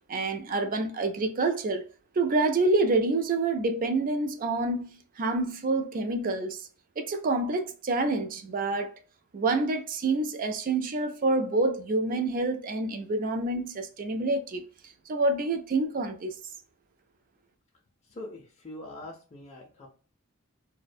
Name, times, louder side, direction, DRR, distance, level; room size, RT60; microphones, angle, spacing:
voice 1, 0.1-1.8 2.2-6.6 7.0-9.0 9.3-14.6 15.1-16.4, right 2 dB, 40° right, 0.4 m, -27 dB
voice 2, 18.2-19.9, left 1 dB, 30° left, 0.4 m, -43 dB
2.4 x 2.1 x 2.5 m
head